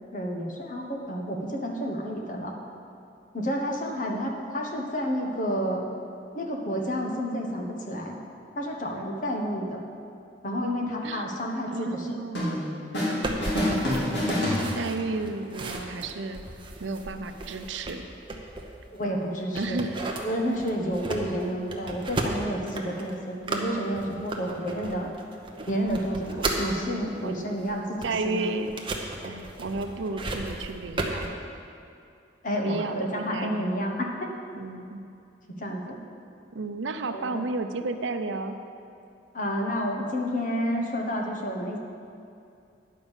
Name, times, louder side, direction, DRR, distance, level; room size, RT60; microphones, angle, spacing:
voice 1, 0.1-2.5 3.3-5.8 6.3-8.2 8.6-9.8 10.4-12.1 18.9-19.8 20.2-25.1 25.7-28.5 32.4-34.3 35.5-36.0 37.1-37.4 39.3-41.8, equal, 45° left, 1 dB, 1.2 m, -30 dB
voice 2, 11.7-12.5 13.6-14.1 14.7-16.4 16.8-18.0 19.5-20.0 26.4-26.5 27.2-27.4 28.0-28.8 29.2-31.3 32.6-34.0 34.5-35.0 36.5-38.5, right 3 dB, 90° right, 8 dB, 0.6 m, -32 dB
sound 1, 12.3-13.2 13.4-15.2, left 1 dB, 70° left, 2.7 m, -27 dB
sound 2, 13.2-19.1 19.5-26.7 27.2-31.3, right 2 dB, 25° right, 0.8 m, -35 dB
10.0 x 5.4 x 7.2 m, 2.5 s
head